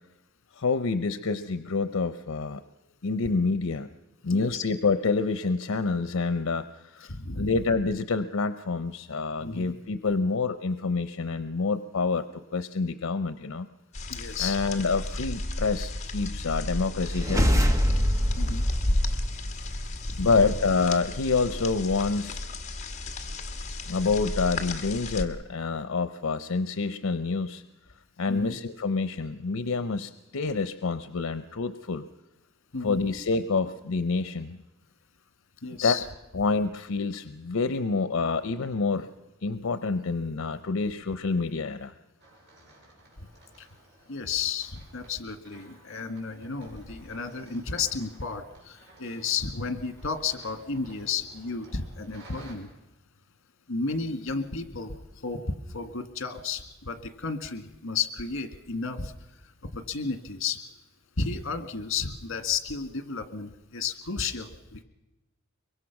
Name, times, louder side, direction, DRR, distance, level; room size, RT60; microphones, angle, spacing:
voice 1, 0.5-2.6 3.0-3.9 4.2-7.1 7.3-13.7 14.4-17.7 20.2-22.4 23.9-27.6 28.2-32.1 32.8-34.6 35.8-36.0 36.3-39.1 39.4-41.9, left 4 dB, 85° left, 11 dB, 0.7 m, -27 dB
voice 2, 4.3-4.6 7.0-7.6 9.4-9.7 14.1-14.6 18.4-18.7 20.2-20.3 28.3-28.6 32.7-33.0 35.6-36.1 43.2-43.3 43.6-43.7 44.1-52.7 53.7-59.1 59.7-60.6 61.2-64.8, left 5 dB, 65° left, 8 dB, 1.8 m, -33 dB
sound 1, 13.9-25.2, left 1 dB, 35° left, 1.7 m, -32 dB
sound 2, 17.0-19.8, equal, 15° right, 1.1 m, -25 dB
sound 3, 42.2-52.6, right 1 dB, 60° right, 6.5 m, -54 dB
24.0 x 23.0 x 6.0 m, 1.0 s
head